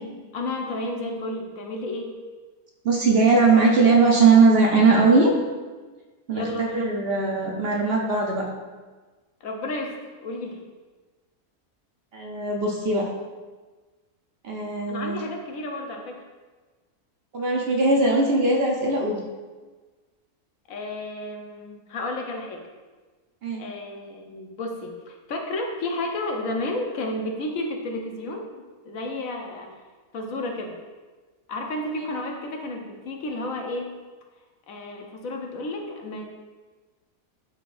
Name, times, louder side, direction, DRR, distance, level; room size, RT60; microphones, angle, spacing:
voice 1, 0.3-2.2 6.3-6.8 9.4-10.6 14.9-16.2 20.7-22.6 23.6-28.5 28.8-29.7 30.1-30.8 31.5-33.9 34.7-36.3, left 2 dB, 70° left, 2 dB, 1.2 m, -32 dB
voice 2, 2.8-5.3 6.3-8.4 12.1-13.1 14.4-15.2 17.3-19.2 23.4-23.6, right 3 dB, 55° right, 0 dB, 0.8 m, -20 dB
11.0 x 3.8 x 2.5 m, 1.3 s
omnidirectional pair, 1.5 m